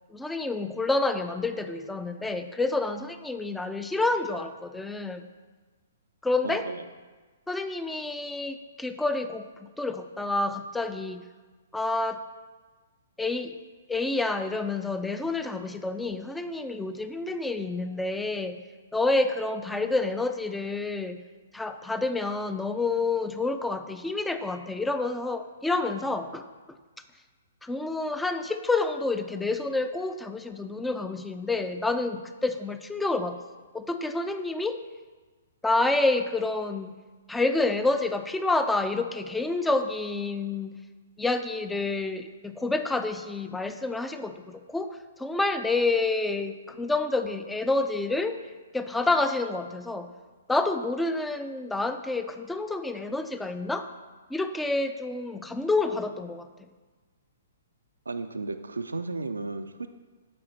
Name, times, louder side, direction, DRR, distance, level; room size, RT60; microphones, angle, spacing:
voice 1, 0.1-5.3 6.2-6.7 7.5-11.2 11.7-12.2 13.2-13.5 13.9-18.6 18.9-21.2 21.5-26.4 27.6-33.4 33.7-34.8 35.6-36.9 37.3-40.7 41.2-48.4 48.7-50.1 50.5-53.9 54.3-56.5, left 3 dB, 5° left, 9 dB, 0.3 m, -28 dB
voice 2, 6.4-6.8 58.1-59.9, right 3 dB, 80° right, 9 dB, 0.3 m, -34 dB
6.8 x 4.9 x 4.0 m, 1.3 s
figure-of-eight pair, 120°, 0 cm